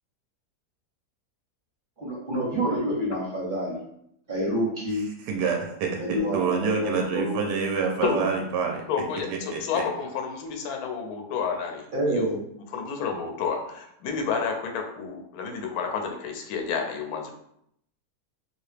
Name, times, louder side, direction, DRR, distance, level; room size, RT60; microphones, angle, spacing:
voice 1, 2.0-3.8 4.3-5.1 6.0-7.4 8.0-8.2 11.9-12.4, equal, 40° right, -5 dB, 0.8 m, -27 dB
voice 2, 5.2-8.8 9.5-9.8, right 5 dB, 90° right, 2 dB, 1.2 m, -27 dB
voice 3, 8.9-12.3 12.7-17.3, left 6 dB, 70° left, 3 dB, 1.0 m, -30 dB
2.9 x 2.8 x 3.2 m, 0.73 s
omnidirectional pair, 1.8 m